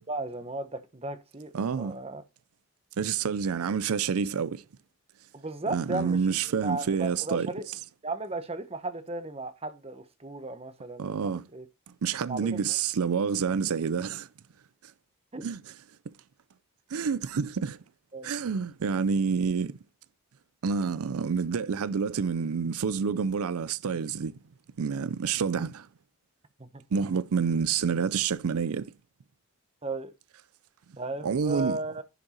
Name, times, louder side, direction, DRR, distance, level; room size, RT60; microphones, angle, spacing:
voice 1, 0.1-1.5 1.8-2.2 5.3-7.6 8.0-11.7 12.3-12.7 15.3-15.4 18.1-18.3 26.6-26.8 29.8-30.1 31.0-32.0, right 2 dB, 25° right, 1.0 m, -35 dB
voice 2, 1.5-2.0 3.0-4.6 5.7-7.8 11.0-11.4 12.0-14.3 15.4-15.6 16.9-17.8 18.2-19.8 20.6-24.3 24.8-25.9 26.9-28.9 31.2-31.8, right 6 dB, 80° right, 0.5 m, -28 dB
11.0 x 5.3 x 4.3 m
head